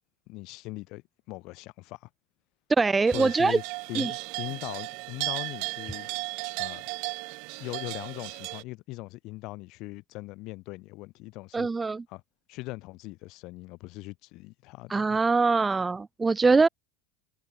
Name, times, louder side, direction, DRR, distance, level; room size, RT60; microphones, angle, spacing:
voice 1, 0.3-2.1 3.1-3.6 3.9-6.1 6.6-6.9 7.6-11.7 12.1-12.2 12.5-15.2, left 22 dB, 50° left, 2.3 m, -40 dB
voice 2, 2.8-3.6 3.9-4.1 11.5-12.0 14.9-16.7, right 4 dB, 10° right, 0.5 m, -23 dB
sound 1, 3.1-8.6, right 33 dB, 55° right, 1.6 m, -35 dB
supercardioid pair, 145°, 0 cm